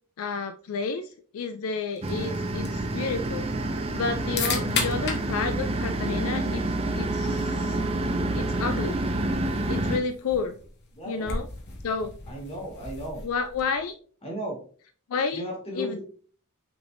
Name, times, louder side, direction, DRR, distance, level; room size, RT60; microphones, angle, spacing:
voice 1, 0.2-3.5 3.9-6.7 6.9-7.8 8.3-9.0 9.7-10.5 11.1-11.5 11.8-12.1 13.2-13.9 15.1-15.4 15.8-16.0, left 5 dB, 70° left, 9 dB, 0.3 m, -30 dB
sound 1, 2.0-13.9, left 4 dB, 50° left, 0.9 m, -38 dB
sound 2, 2.0-10.0, right 2 dB, 25° right, 0.4 m, -28 dB
voice 2, 11.0-11.4 12.3-13.2 14.2-14.6 15.3-16.0, equal, 25° left, -2 dB, 1.7 m, -34 dB
6.0 x 3.4 x 2.6 m, 0.44 s
head